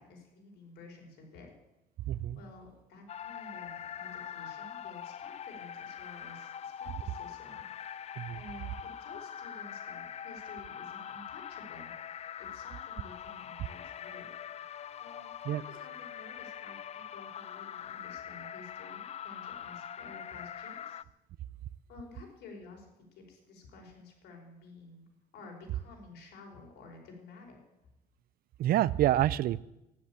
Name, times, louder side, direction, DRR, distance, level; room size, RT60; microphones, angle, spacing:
voice 1, 0.0-1.5 2.3-14.3 15.0-21.0 21.9-25.1 25.3-27.6, left 3 dB, 75° left, 1 dB, 5.4 m, -52 dB
voice 2, 2.1-2.4 8.2-8.4 15.5-15.6 28.6-29.6, right 13 dB, 60° right, 20 dB, 0.5 m, -27 dB
sound 1, 3.1-21.0, left 9 dB, 40° left, 0.5 m, -43 dB
13.0 x 11.0 x 8.7 m, 0.94 s
cardioid pair, 110°, 17 cm